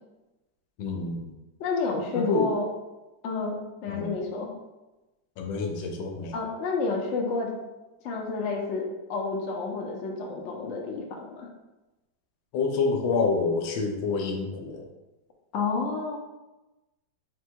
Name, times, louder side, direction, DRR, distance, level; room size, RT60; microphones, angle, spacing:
voice 1, 0.8-1.3 2.1-2.5 3.9-4.1 5.4-6.3 12.5-14.9, left 4 dB, 85° left, 3 dB, 1.4 m, -27 dB
voice 2, 1.6-2.6 3.2-4.5 6.3-7.5 8.0-8.8 9.1-11.5 15.5-16.2, left 4 dB, 60° left, 0 dB, 0.7 m, -30 dB
4.2 x 2.2 x 4.4 m, 1.1 s
omnidirectional pair, 2.0 m